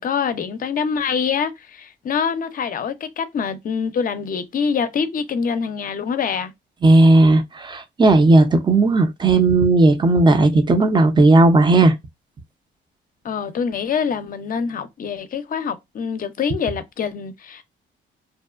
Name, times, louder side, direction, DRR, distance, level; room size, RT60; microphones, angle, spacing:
voice 1, 0.0-6.5 13.2-17.6, left 6 dB, 45° left, 0.5 m, -25 dB
voice 2, 6.8-11.9, right 2 dB, 25° right, 0.5 m, -14 dB
2.5 x 2.1 x 2.3 m
cardioid pair, 90°, 20 cm